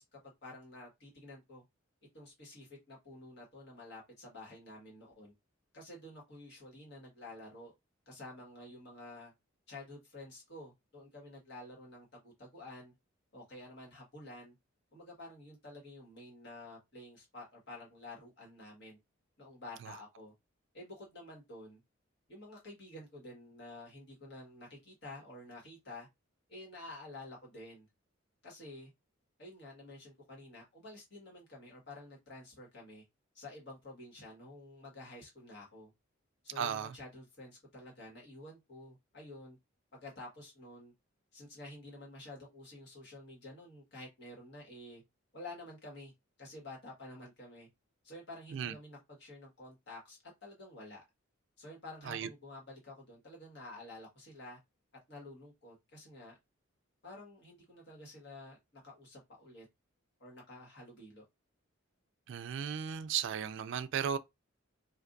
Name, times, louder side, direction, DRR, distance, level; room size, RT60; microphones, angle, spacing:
voice 1, 0.0-1.6 2.1-5.3 5.7-7.7 8.0-9.3 9.7-12.9 13.3-14.5 14.9-19.0 19.4-20.3 20.7-21.8 22.3-26.1 26.5-27.9 28.4-28.9 29.4-33.0 33.3-35.9 36.4-39.6 39.9-40.9 41.3-45.0 45.3-46.1 46.4-47.7 48.0-51.0 51.6-54.6 55.1-56.4 57.0-58.6 58.8-59.6 60.2-61.2, left 2 dB, 55° left, 1.6 m, -50 dB
voice 2, 36.6-36.9 48.5-48.7 52.1-52.3 62.3-64.2, right 8 dB, 60° right, 0.3 m, -35 dB
3.4 x 2.5 x 2.6 m
head